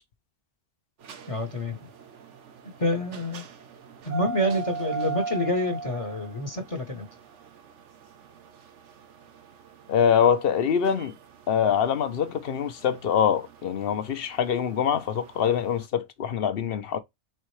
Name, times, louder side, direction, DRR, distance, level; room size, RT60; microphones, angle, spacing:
sound 1, 1.0-15.7, right 5 dB, 85° right, 1.1 m, -39 dB
voice 1, 1.3-1.8 2.8-3.4 4.0-7.1, left 1 dB, 30° left, 0.9 m, -27 dB
voice 2, 9.9-11.1 11.5-17.0, left 8 dB, 60° left, 0.9 m, -24 dB
4.4 x 3.6 x 3.1 m
omnidirectional pair, 1.2 m